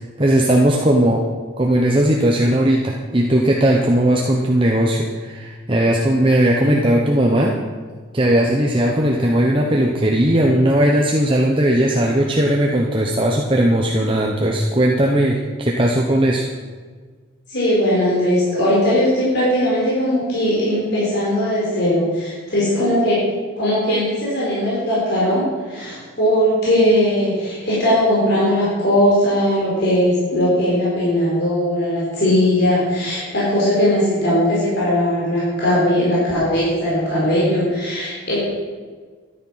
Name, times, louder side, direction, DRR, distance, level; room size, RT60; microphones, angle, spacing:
voice 1, 0.2-1.2 1.6-7.5 8.1-16.5, right 1 dB, 25° right, -1 dB, 0.9 m, -17 dB
voice 2, 17.5-23.2 23.6-38.4, equal, 50° left, -7 dB, 4.5 m, -19 dB
13.0 x 10.5 x 5.8 m, 1.5 s
head